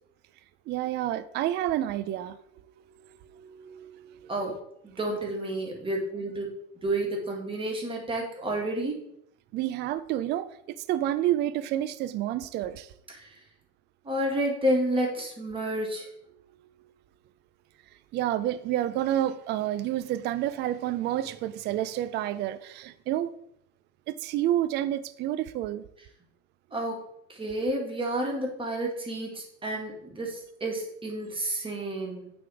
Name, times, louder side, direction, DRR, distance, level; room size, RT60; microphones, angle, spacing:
voice 1, 0.7-2.4 2.9-4.3 9.5-10.5 10.9-12.9 18.1-23.3 24.1-25.8, right 12 dB, 30° right, 0.4 m, -29 dB
voice 2, 4.8-6.5 6.8-9.1 13.1-13.4 14.0-16.1 26.7-27.0 27.3-32.3, right 1 dB, 15° right, 1.8 m, -30 dB
8.3 x 3.6 x 4.8 m
supercardioid pair, 125°, 37 cm